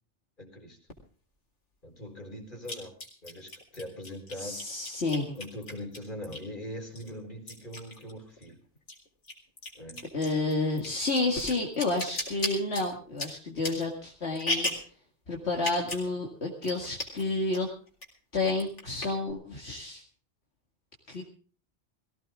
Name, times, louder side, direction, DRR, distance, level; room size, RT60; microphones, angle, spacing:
voice 1, 0.4-0.8 1.8-3.0 3.2-4.6 5.3-8.6 9.7-10.1, left 1 dB, 45° left, 2 dB, 4.3 m, -41 dB
sound 1, 0.9-1.0 2.6-6.6 7.0-8.5 8.8-14.9 15.5-16.1 16.4-16.5 16.6-17.2 17.5-18.1 18.4-19.3, left 1 dB, 85° left, 4.0 m, -36 dB
voice 2, 4.4-5.4 10.1-14.7 15.3-17.7 18.3-20.0 21.1-21.2, left 2 dB, 70° left, 0 dB, 2.5 m, -30 dB
19.0 x 16.5 x 3.6 m, 0.40 s
omnidirectional pair, 1.2 m